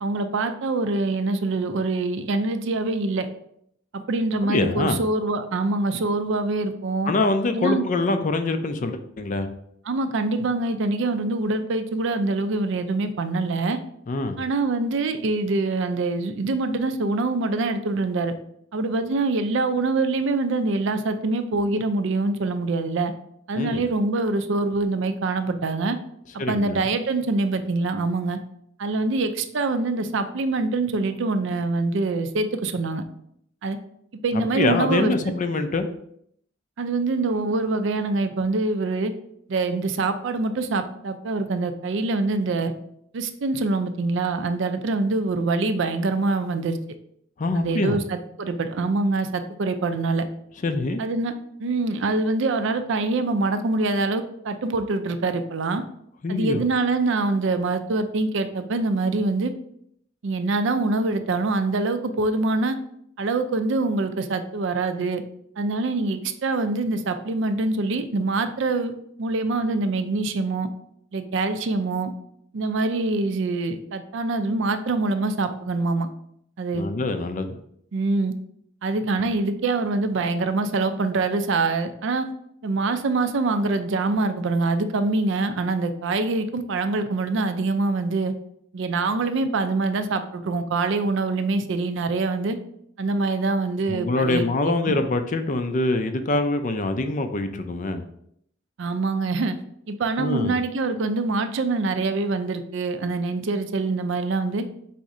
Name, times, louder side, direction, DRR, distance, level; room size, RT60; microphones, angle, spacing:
voice 1, 0.0-3.3 3.9-7.1 7.5-7.8 9.9-13.8 14.4-18.3 18.7-23.1 23.5-26.0 26.5-28.4 28.8-33.0 33.6-33.8 34.2-35.1 36.8-39.1 39.5-42.7 43.1-46.8 47.5-50.3 51.0-51.3 51.6-55.8 56.3-59.5 60.2-62.8 63.2-65.2 65.6-68.9 69.2-70.7 71.1-72.1 72.5-76.1 76.6-76.9 77.9-78.4 78.8-82.3 82.6-88.3 88.7-92.6 93.0-95.0 98.8-99.6 99.9-104.6, right 3 dB, 65° right, 9 dB, 0.4 m, -24 dB
voice 2, 4.5-5.0 7.1-9.5 14.1-14.4 23.6-23.8 26.4-26.8 34.3-35.9 47.4-48.0 50.6-51.1 56.2-56.6 76.7-77.6 93.9-98.0 100.2-100.6, left 2 dB, 40° left, 8 dB, 0.4 m, -24 dB
4.2 x 2.6 x 4.8 m, 0.71 s
head